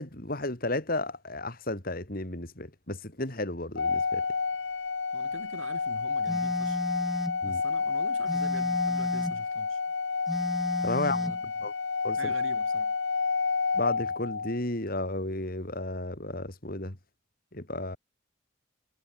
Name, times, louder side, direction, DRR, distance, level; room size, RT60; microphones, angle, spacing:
voice 1, 0.0-4.2 7.4-7.6 10.8-11.2 11.6-11.7 12.0-12.3 13.7-17.0 17.5-18.0, left 2 dB, 45° left, 3.2 m, -33 dB
Organ, 3.8-14.6, left 4 dB, 65° left, 1.0 m, -30 dB
voice 2, 5.1-6.9 7.4-9.8 11.0-11.5 12.2-13.0, right 2 dB, 90° right, 6.1 m, -45 dB
Telephone, 6.3-7.4 8.3-9.4 10.3-11.4, equal, ahead, 2.1 m, -34 dB
head